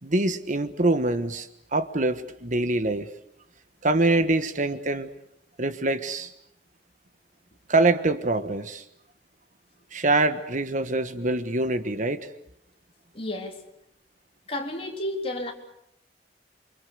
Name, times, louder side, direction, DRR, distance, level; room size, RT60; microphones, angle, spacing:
voice 1, 0.0-3.1 3.8-5.1 5.6-6.3 7.7-8.8 9.9-12.3, right 2 dB, 45° right, 10 dB, 1.4 m, -24 dB
voice 2, 13.1-13.6 14.5-15.5, left 1 dB, 35° left, 2 dB, 3.9 m, -31 dB
28.5 x 25.5 x 6.9 m, 0.74 s
head